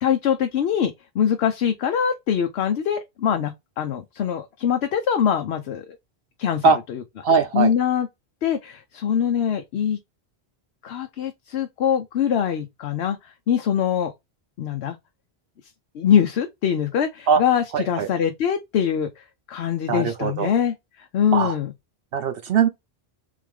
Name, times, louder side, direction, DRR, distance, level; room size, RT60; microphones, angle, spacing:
voice 1, 0.0-6.0 6.4-7.0 7.5-8.1 8.4-10.0 10.8-14.1 14.6-15.0 15.9-21.7, left 8 dB, 90° left, 0.9 m, -23 dB
voice 2, 7.2-7.7 17.3-17.4 17.7-18.1 19.9-20.5 21.3-21.5 22.1-22.7, right 5 dB, 70° right, 0.8 m, -20 dB
3.6 x 3.3 x 3.5 m
omnidirectional pair, 1.1 m